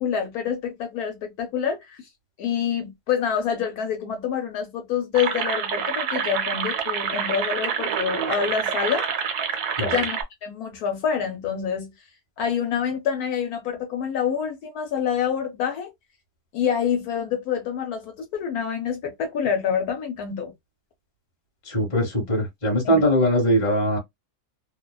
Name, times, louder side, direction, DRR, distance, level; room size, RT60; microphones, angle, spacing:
voice 1, 0.0-2.1 2.4-9.1 9.8-11.9 12.4-15.9 16.5-20.5 22.8-23.0, left 7 dB, 70° left, 1.1 m, -27 dB
sound 1, 5.1-10.2, right 7 dB, 75° right, 1.1 m, -27 dB
voice 2, 21.7-24.0, equal, 30° left, 1.1 m, -21 dB
2.8 x 2.1 x 2.2 m
omnidirectional pair, 1.7 m